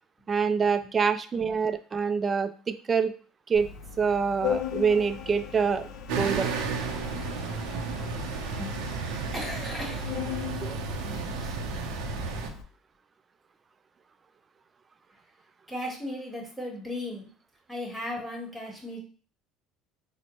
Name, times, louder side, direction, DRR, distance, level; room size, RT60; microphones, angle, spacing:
voice 1, 0.3-3.1 3.5-3.7 4.0-5.9 6.1-6.5 10.6-10.8, right 5 dB, 25° right, 11 dB, 0.3 m, -26 dB
Organ, 3.5-12.6, left 9 dB, 65° left, 0.4 m, -38 dB
sound 1, 6.1-12.5, right 4 dB, 80° right, 0.5 m, -33 dB
voice 2, 9.3-10.1 11.4-11.6 15.7-17.3 17.7-19.0, left 1 dB, ahead, -1 dB, 1.2 m, -36 dB
4.3 x 2.1 x 2.9 m, 0.41 s
cardioid pair, 120°, 0 cm